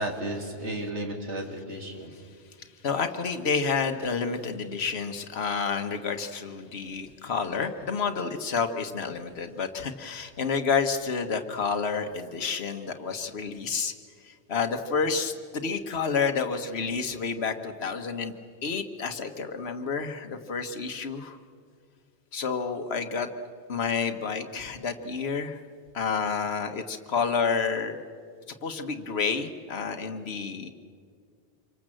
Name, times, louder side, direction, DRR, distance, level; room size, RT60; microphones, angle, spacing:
voice 1, 0.0-2.1, right 1 dB, 90° right, 2 dB, 3.1 m, -33 dB
voice 2, 2.6-13.9 14.2-18.3 18.6-21.4 22.3-23.3 23.7-25.6 25.9-28.0 28.6-30.7, left 5 dB, 65° left, 6 dB, 1.5 m, -29 dB
27.0 x 24.0 x 7.7 m, 2.1 s
omnidirectional pair, 1.2 m